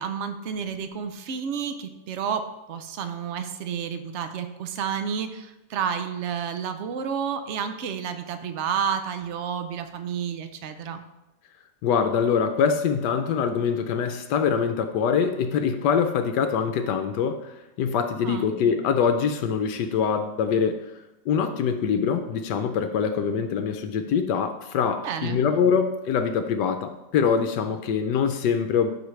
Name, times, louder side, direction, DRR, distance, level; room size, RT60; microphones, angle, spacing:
voice 1, 0.0-11.0 18.2-18.6 25.0-25.6, right 7 dB, 65° right, 8 dB, 0.6 m, -30 dB
voice 2, 11.8-17.5 17.8-20.8 21.3-28.9, left 6 dB, 75° left, 8 dB, 1.2 m, -24 dB
12.5 x 5.1 x 3.2 m, 0.97 s
omnidirectional pair, 2.0 m